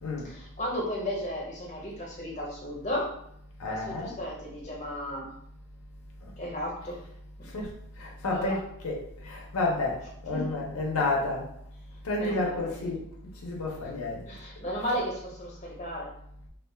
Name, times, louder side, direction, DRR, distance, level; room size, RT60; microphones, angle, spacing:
voice 1, 0.2-3.1 3.6-5.3 6.4-7.0 7.4-7.5 8.3-8.6 10.3-10.6 12.2-12.6 12.8-12.9 14.3-16.1, equal, 35° left, -3 dB, 0.7 m, -34 dB
voice 2, 3.6-4.2 7.5-7.7 8.0-11.5 12.0-13.0 13.4-14.2 14.8-15.0, left 2 dB, 75° left, -2 dB, 0.6 m, -30 dB
2.4 x 2.2 x 3.2 m, 0.71 s
head